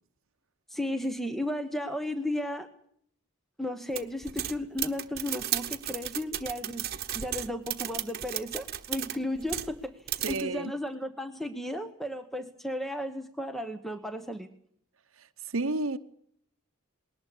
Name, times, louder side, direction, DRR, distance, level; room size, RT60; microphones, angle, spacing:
voice 1, 0.7-2.7 3.6-14.5, left 1 dB, ahead, 1.1 m, -34 dB
sound 1, 4.0-9.8 10.1-10.4, right 11 dB, 45° right, 1.2 m, -34 dB
voice 2, 10.2-10.7 15.2-16.0, right 3 dB, 70° right, 1.0 m, -31 dB
20.5 x 18.5 x 8.4 m
head